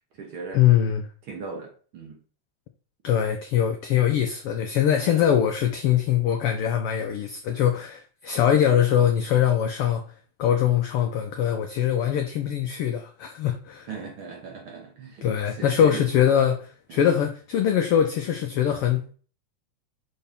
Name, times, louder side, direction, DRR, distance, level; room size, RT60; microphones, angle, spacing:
voice 1, 0.0-0.6 1.2-2.2 4.9-5.3 8.3-8.5 13.9-16.0 16.9-17.1, right 4 dB, 60° right, 1.5 m, -39 dB
voice 2, 0.5-1.1 3.0-10.0 10.4-13.9 15.2-19.1, left 9 dB, 85° left, 1.3 m, -22 dB
6.5 x 4.2 x 3.5 m
omnidirectional pair, 3.3 m